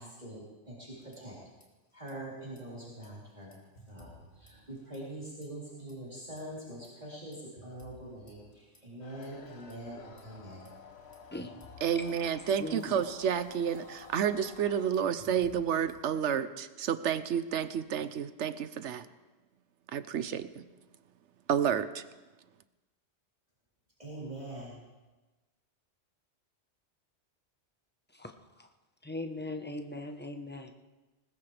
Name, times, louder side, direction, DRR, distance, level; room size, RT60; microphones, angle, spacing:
voice 1, 0.0-1.4 1.9-3.6 3.9-10.7 24.0-24.8, right 1 dB, 35° right, -8 dB, 3.8 m, -44 dB
sound 1, 0.9-1.7 1.9-2.1 2.5-5.2 5.4-5.9 6.4-9.7 10.2-16.1, left 1 dB, 50° left, 2.7 m, -58 dB
sound 2, 9.0-14.9, left 5 dB, 65° left, 1.3 m, -52 dB
voice 2, 11.8-19.1 19.9-20.6 21.5-22.0, right 8 dB, 80° right, 13 dB, 1.0 m, -30 dB
voice 3, 12.6-13.0 28.2-28.3 29.0-30.7, left 2 dB, 10° left, 4 dB, 1.0 m, -39 dB
20.0 x 20.0 x 3.4 m, 1.2 s
omnidirectional pair, 1.2 m